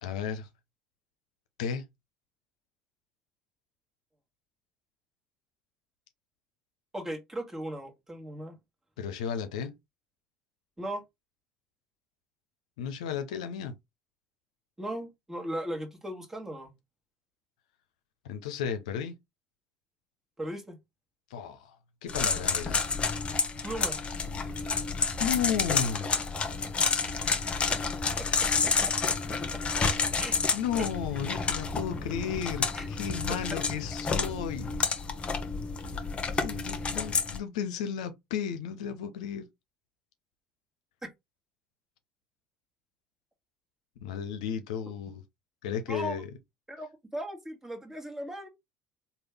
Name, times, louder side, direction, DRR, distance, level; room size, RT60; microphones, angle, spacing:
voice 1, 0.0-0.5 1.6-1.9 9.0-9.8 12.8-13.7 18.2-19.2 21.3-21.8 22.0-22.8 24.4-24.5 25.0-26.1 30.5-34.7 36.3-39.5 44.0-45.2 45.6-46.3, left 8 dB, 80° left, 0.5 m, -34 dB
voice 2, 6.9-8.5 10.8-11.0 14.8-16.7 20.4-20.8 23.6-24.0 27.7-27.8 28.2-28.3 29.1-29.2 29.5-29.6 30.2-30.4 32.7-32.9 41.0-41.1 45.9-46.1 46.7-48.5, right 1 dB, 10° right, 1.4 m, -37 dB
sound 1, 22.1-37.4, left 5 dB, 35° left, 0.9 m, -30 dB
3.3 x 2.3 x 3.3 m
hypercardioid pair, 70°, 4 cm